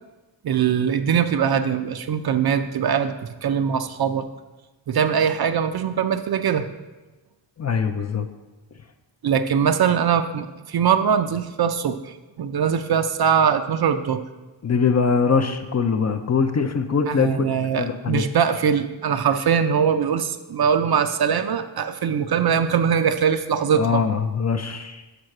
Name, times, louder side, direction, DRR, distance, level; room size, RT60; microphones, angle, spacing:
voice 1, 0.4-4.3 4.9-6.7 9.2-14.2 17.1-24.0, right 7 dB, 50° right, 9 dB, 0.5 m, -22 dB
voice 2, 7.6-8.3 14.6-17.4 17.7-18.2 23.7-25.0, left 5 dB, 35° left, 6 dB, 0.4 m, -22 dB
6.1 x 5.6 x 6.4 m, 1.1 s
wide cardioid pair, 160°, 48 cm